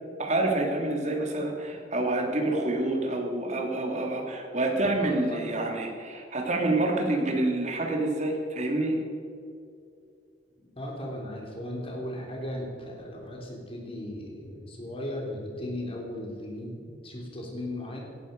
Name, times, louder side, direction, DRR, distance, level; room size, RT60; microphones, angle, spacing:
voice 1, 0.2-9.0, right 2 dB, 40° right, 1 dB, 2.7 m, -27 dB
voice 2, 5.0-5.5 10.8-18.0, left 1 dB, 30° left, -1 dB, 3.6 m, -37 dB
17.5 x 12.5 x 5.3 m, 2.5 s
head